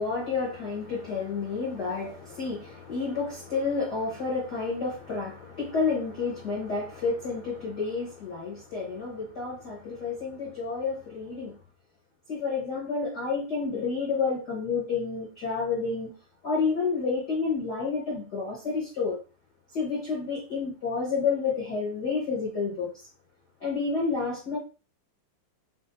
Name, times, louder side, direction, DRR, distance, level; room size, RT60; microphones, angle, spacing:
voice 1, 0.0-11.5 12.3-16.1 16.4-19.2 19.7-22.9 23.6-24.6, left 4 dB, 90° left, -6 dB, 0.9 m, -30 dB
5.9 x 2.1 x 2.6 m, 0.34 s
omnidirectional pair, 3.9 m